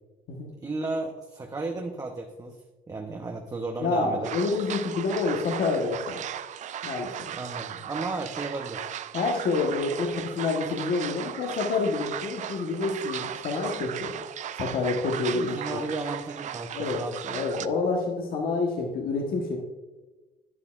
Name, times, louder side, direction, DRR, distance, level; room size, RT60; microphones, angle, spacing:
voice 1, 0.6-2.6 2.9-4.3 7.3-8.9 15.3-17.5, right 3 dB, 20° right, 2 dB, 0.8 m, -34 dB
voice 2, 3.8-6.2 6.8-7.1 9.1-14.1 14.6-15.8 16.7-17.0 17.3-19.6, left 3 dB, 60° left, 0 dB, 1.3 m, -28 dB
sound 1, 4.2-17.7, right 10 dB, 45° right, 0.4 m, -36 dB
11.0 x 9.6 x 2.5 m, 1.2 s
cardioid pair, 110°, 17 cm